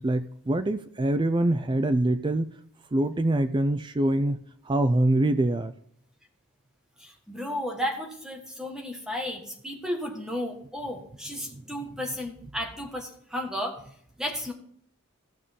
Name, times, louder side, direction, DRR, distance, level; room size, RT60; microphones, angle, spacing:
voice 1, 0.0-2.5 2.9-5.7, right 1 dB, 20° right, 11 dB, 0.4 m, -24 dB
voice 2, 7.0-13.8 14.2-14.5, left 1 dB, 5° right, 1 dB, 1.5 m, -33 dB
14.5 x 6.9 x 3.6 m, 0.65 s
head